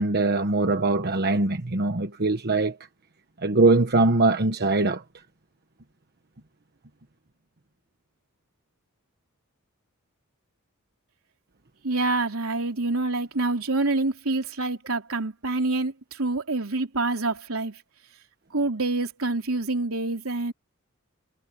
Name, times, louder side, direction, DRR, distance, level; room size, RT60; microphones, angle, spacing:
voice 1, 0.0-2.8 3.4-5.0, right 2 dB, 50° right, 1.2 m, -22 dB
voice 2, 11.8-17.8 18.5-20.5, right 2 dB, 75° right, 3.4 m, -26 dB
head